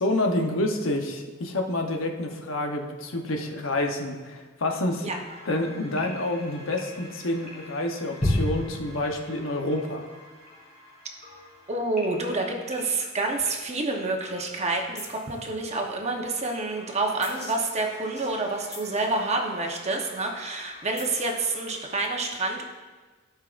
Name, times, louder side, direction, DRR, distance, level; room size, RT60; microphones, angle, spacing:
voice 1, 0.0-5.0 5.5-10.0, left 1 dB, 85° left, 3 dB, 0.9 m, -28 dB
sound 1, 5.3-22.1, left 1 dB, 35° left, 2.9 m, -38 dB
voice 2, 11.7-22.7, right 2 dB, 35° right, 1 dB, 1.0 m, -28 dB
16.0 x 5.5 x 2.5 m, 1.3 s
head